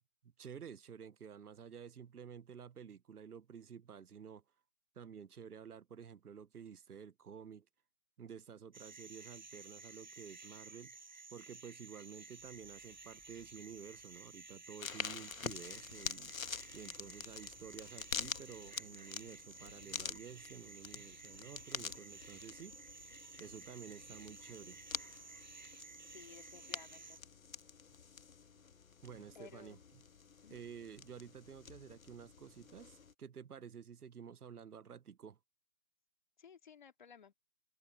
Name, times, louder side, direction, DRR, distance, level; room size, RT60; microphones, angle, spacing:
voice 1, 0.2-4.4 5.0-7.7 8.2-11.0 11.3-22.8 23.4-24.8 29.0-29.8 30.5-35.4, right 7 dB, 80° right, 1.0 m, -51 dB
sound 1, 8.7-27.2, right 4 dB, 30° right, 0.8 m, -54 dB
sound 2, 12.4-18.2, left 1 dB, ahead, 4.8 m, -72 dB
sound 3, 14.8-33.1, left 6 dB, 65° left, 1.3 m, -47 dB
voice 2, 26.1-27.2 29.3-29.8 30.4-30.6 36.4-37.3, left 7 dB, 30° left, 2.3 m, -57 dB
hypercardioid pair, 175°, 45 cm